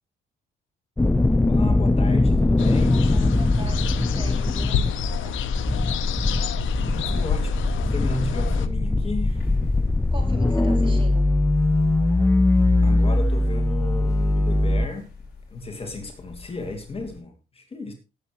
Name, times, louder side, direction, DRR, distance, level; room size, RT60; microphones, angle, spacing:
sound 1, 1.0-14.9, left 2 dB, 10° left, 0.5 m, -21 dB
voice 1, 1.5-3.0 6.9-9.5 12.8-15.1 15.5-17.9, left 2 dB, 30° left, 2.7 m, -34 dB
sound 2, 2.6-8.7, left 9 dB, 80° left, 0.9 m, -29 dB
voice 2, 2.7-5.4 10.1-11.3, right 2 dB, 25° right, 4.1 m, -42 dB
sound 3, 9.2-17.2, left 5 dB, 50° left, 7.1 m, -46 dB
18.0 x 8.1 x 3.1 m
cardioid pair, 90°, 20 cm